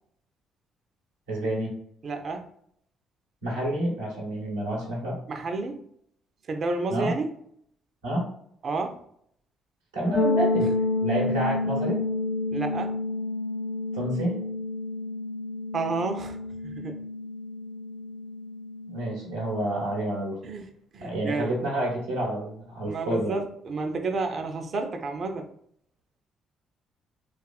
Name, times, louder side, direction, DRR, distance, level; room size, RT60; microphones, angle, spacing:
voice 1, 1.3-1.7 3.4-5.2 6.9-7.1 8.0-8.3 9.9-10.7 11.0-12.0 13.9-14.4 18.9-20.4 21.0-23.3, right 1 dB, 90° right, -5 dB, 1.0 m, -29 dB
voice 2, 2.0-2.5 5.3-5.8 6.5-7.4 8.6-9.0 12.5-13.0 15.7-16.4 16.6-17.0 20.4-21.6 22.9-25.5, right 3 dB, 50° right, 5 dB, 0.5 m, -30 dB
sound 1, 10.1-19.9, left 3 dB, 50° left, 0.4 m, -30 dB
2.8 x 2.4 x 2.3 m, 0.66 s
hypercardioid pair, 50°, 0 cm